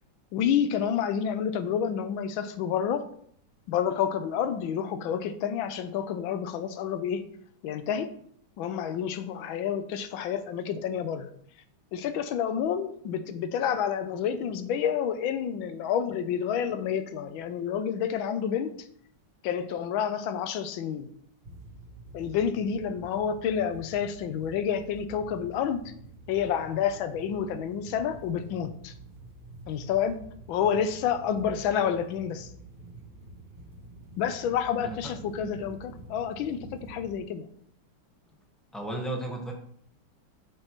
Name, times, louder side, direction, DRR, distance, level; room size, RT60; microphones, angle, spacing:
voice 1, 0.3-3.0 3.7-7.2 7.6-8.1 8.6-11.3 11.9-18.9 19.4-21.1 22.1-25.9 26.3-28.9 29.7-30.2 30.5-32.5 34.2-37.5, left 8 dB, 80° left, 11 dB, 1.4 m, -29 dB
sound 1, 21.4-37.2, right 2 dB, 65° right, 2.1 m, -48 dB
voice 2, 38.7-39.5, right 1 dB, ahead, 1 dB, 0.8 m, -34 dB
7.9 x 6.5 x 3.0 m, 0.66 s
omnidirectional pair, 2.2 m